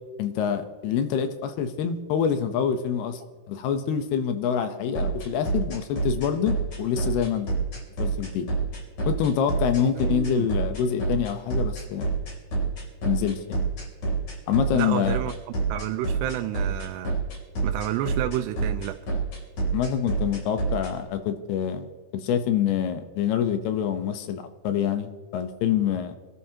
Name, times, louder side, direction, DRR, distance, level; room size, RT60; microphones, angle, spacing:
voice 1, 0.2-3.2 3.5-7.5 8.0-8.5 9.1-12.1 13.0-13.6 14.5-15.2 19.7-21.9 22.2-26.2, left 8 dB, 75° left, 8 dB, 2.7 m, -26 dB
sound 1, 4.9-20.9, right 4 dB, 40° left, 4.0 m, -27 dB
voice 2, 10.0-10.5 14.7-15.3 15.7-17.2 17.6-19.0, right 13 dB, 85° right, 5 dB, 2.7 m, -30 dB
26.5 x 12.5 x 2.9 m, 1.4 s
omnidirectional pair, 5.0 m